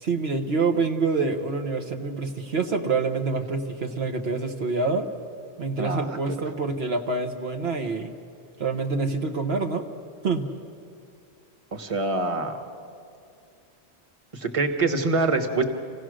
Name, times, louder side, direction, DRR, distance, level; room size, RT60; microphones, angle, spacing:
voice 1, 0.0-5.1 5.6-8.1 8.6-9.9 10.2-10.5, right 4 dB, 70° right, 4 dB, 1.3 m, -26 dB
voice 2, 5.8-6.3 11.7-12.6 14.3-15.6, right 3 dB, 30° right, 6 dB, 1.2 m, -25 dB
27.5 x 16.5 x 6.3 m, 2.4 s
omnidirectional pair, 1.1 m